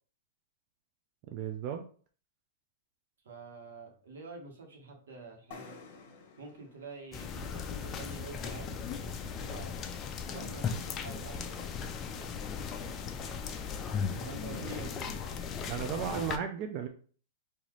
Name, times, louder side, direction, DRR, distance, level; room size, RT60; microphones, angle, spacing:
voice 1, 1.3-1.8 14.6-14.9 15.7-16.9, right 8 dB, 40° right, 4 dB, 0.5 m, -35 dB
voice 2, 3.2-5.8 6.4-8.8 9.5-9.8 10.3-11.6 14.2-15.2, right 3 dB, 80° right, 1 dB, 1.4 m, -47 dB
sound 1, 5.5-9.1, left 5 dB, 50° left, 0.9 m, -54 dB
sound 2, 7.1-16.4, left 6 dB, 25° left, 0.5 m, -37 dB
4.0 x 2.7 x 3.1 m, 0.42 s
hypercardioid pair, 140°, 0 cm